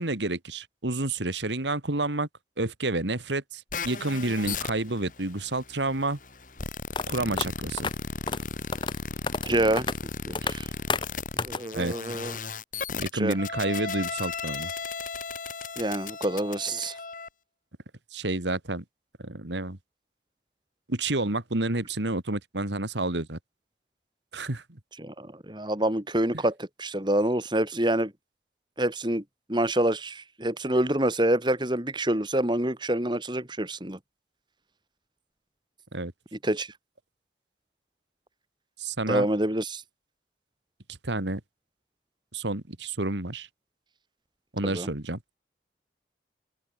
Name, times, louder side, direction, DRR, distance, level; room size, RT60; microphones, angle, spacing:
voice 1, 0.0-2.3 2.6-6.2 7.1-7.9 11.7-11.9 13.0-14.7 18.1-18.8 19.2-19.8 20.9-23.4 24.3-24.6 35.9-36.1 38.8-39.3 41.0-41.4 42.3-43.5 44.5-45.2, right 2 dB, 80° right, 2.3 m, -29 dB
sound 1, 3.7-17.3, left 4 dB, 45° left, 2.4 m, -36 dB
sound 2, 6.9-7.0 7.4-7.5 7.8-7.9 8.3-8.4 8.7-9.0 9.3-9.5 9.8-9.9 10.3-10.5 10.9-11.1 11.4-11.6, left 4 dB, 25° left, 1.0 m, -29 dB
voice 2, 9.5-9.9 10.3-10.7 11.4-12.4 13.1-13.3 15.8-17.0 25.0-28.1 28.8-29.2 29.5-34.0 36.3-36.7 39.1-39.8 44.6-44.9, right 1 dB, 25° right, 2.6 m, -27 dB
open air
head